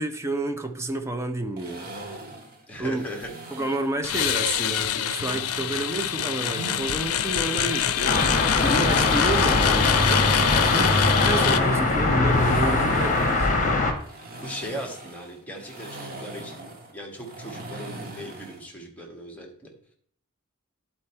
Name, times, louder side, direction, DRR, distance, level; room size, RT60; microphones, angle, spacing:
voice 1, 0.0-1.9 2.8-3.1 3.5-8.2 8.5-11.0 11.2-13.5, right 2 dB, 15° right, 0.6 m, -30 dB
sound 1, 1.6-4.0 5.0-6.9 7.3-9.3 10.7-18.7, right 2 dB, 45° right, 1.4 m, -41 dB
voice 2, 2.7-3.3 10.7-11.0 14.4-19.7, equal, 5° left, 1.5 m, -38 dB
sound 2, 4.0-11.6, left 9 dB, 85° left, 0.5 m, -25 dB
sound 3, 8.1-13.9, left 2 dB, 35° left, 1.2 m, -21 dB
10.5 x 4.3 x 4.3 m
head